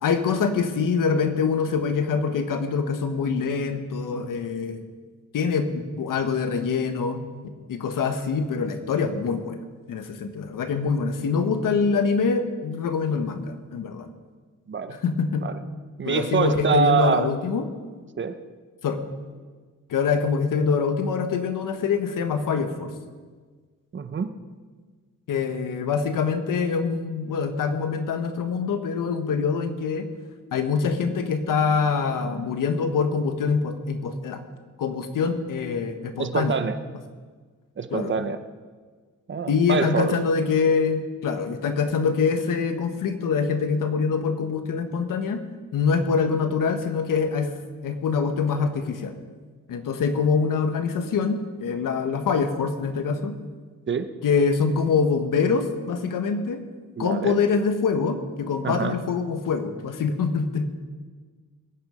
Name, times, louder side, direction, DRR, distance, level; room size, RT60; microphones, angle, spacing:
voice 1, 0.0-4.8 5.3-9.6 9.9-14.1 15.0-15.4 16.0-17.7 18.8-19.0 19.9-22.9 25.3-30.1 30.5-34.4 34.8-36.6 37.9-38.1 39.5-45.4 45.7-47.5 47.8-49.1 49.7-53.4 54.2-56.6 57.0-60.7, left 5 dB, 80° left, 7 dB, 1.5 m, -24 dB
voice 2, 14.7-15.0 15.4-15.6 16.0-17.3 18.2-18.4 23.9-24.3 36.2-36.8 37.8-38.4 39.3-40.1 53.9-54.1 57.0-57.4 58.6-59.0, right 6 dB, 35° right, 10 dB, 0.9 m, -25 dB
21.5 x 9.6 x 5.2 m, 1.5 s
wide cardioid pair, 155°, 32 cm